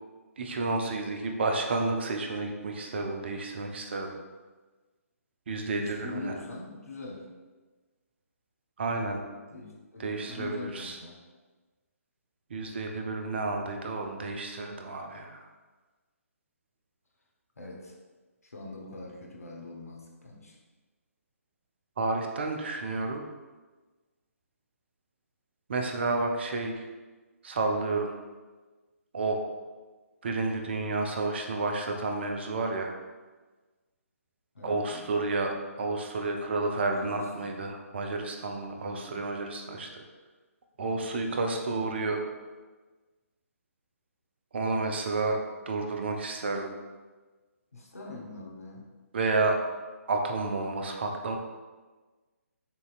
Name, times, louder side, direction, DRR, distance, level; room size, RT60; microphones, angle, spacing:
voice 1, 0.4-4.1 5.5-6.3 8.8-9.2 10.0-11.0 12.5-15.5 22.0-23.2 25.7-26.9 27.4-28.1 29.1-29.4 30.2-32.9 34.6-40.0 40.8-42.2 44.5-45.4 45.7-46.7 49.1-49.6 50.1-51.4, right 3 dB, 45° right, 3 dB, 0.5 m, -30 dB
voice 2, 5.6-7.3 9.5-11.2 17.6-18.0 18.4-20.6 34.5-35.2 36.7-37.6 38.7-39.2 40.8-41.5 47.7-48.9, left 3 dB, 75° left, 0 dB, 0.9 m, -43 dB
6.8 x 2.7 x 2.4 m, 1.3 s
figure-of-eight pair, 135°, 8 cm